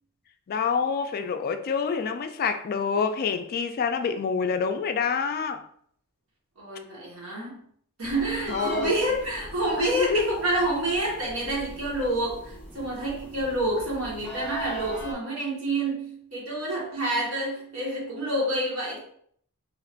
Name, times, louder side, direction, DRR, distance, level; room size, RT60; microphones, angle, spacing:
voice 1, 0.5-5.6 8.5-8.9 9.8-10.4, left 6 dB, 45° left, 0.3 m, -27 dB
voice 2, 6.6-7.6 8.0-19.0, right 1 dB, 70° right, 1.3 m, -28 dB
sound 1, 8.0-15.1, right 1 dB, 5° left, 1.1 m, -40 dB
2.9 x 2.5 x 4.2 m
head